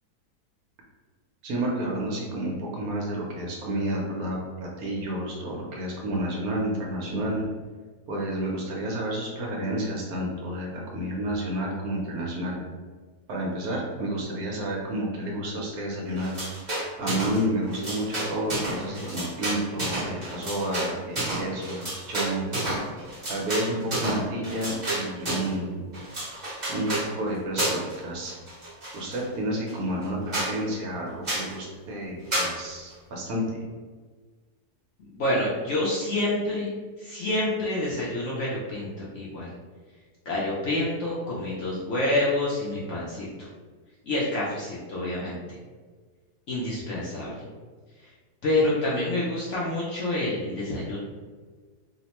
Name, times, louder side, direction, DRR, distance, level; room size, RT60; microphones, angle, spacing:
voice 1, 1.4-7.5 8.1-12.6 13.3-16.4 17.0-22.5 23.3-25.9 26.7-28.3 28.9-33.6, right 1 dB, 70° right, -2 dB, 1.1 m, -30 dB
sound 1, 16.2-17.4 17.7-25.5 25.9-27.1 27.6-28.0 28.2-29.2 29.7-29.8 30.0-30.1 30.3-30.5 31.2-31.5 32.3-32.5, right 1 dB, 30° right, 1.0 m, -30 dB
voice 2, 35.0-39.5 40.3-43.5 44.0-45.4 46.5-47.5 48.0-48.1 48.4-51.0, left 1 dB, 65° left, -6 dB, 0.7 m, -28 dB
2.8 x 2.1 x 2.9 m, 1.4 s
omnidirectional pair, 1.7 m